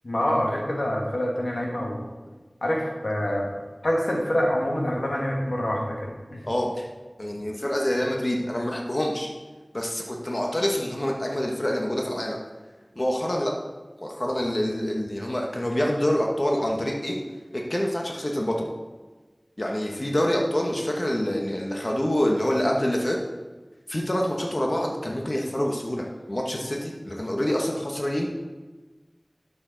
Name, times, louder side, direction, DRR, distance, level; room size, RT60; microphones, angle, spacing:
voice 1, 0.0-2.0 2.6-3.5 3.8-6.4, equal, 85° left, -1 dB, 1.7 m, -26 dB
voice 2, 6.4-6.9 7.2-9.3 9.7-12.4 13.0-13.5 14.0-17.2 17.5-18.7 19.6-23.2 23.9-28.3, equal, 45° left, 0 dB, 1.2 m, -26 dB
11.5 x 6.9 x 4.0 m, 1.3 s
wide cardioid pair, 45°, 0 cm